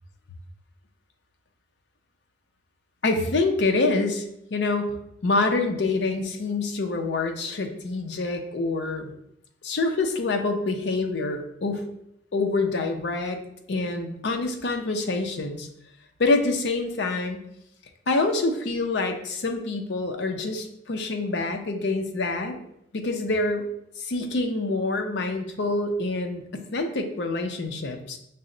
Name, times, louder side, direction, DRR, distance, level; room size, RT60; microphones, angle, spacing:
voice 1, 3.0-5.0 5.2-9.1 9.6-11.9 12.3-13.4 13.7-15.7 16.2-17.4 18.1-22.6 22.9-23.7 24.0-28.2, left 3 dB, 70° left, 5 dB, 0.5 m, -26 dB
5.4 x 2.0 x 3.7 m, 0.78 s
head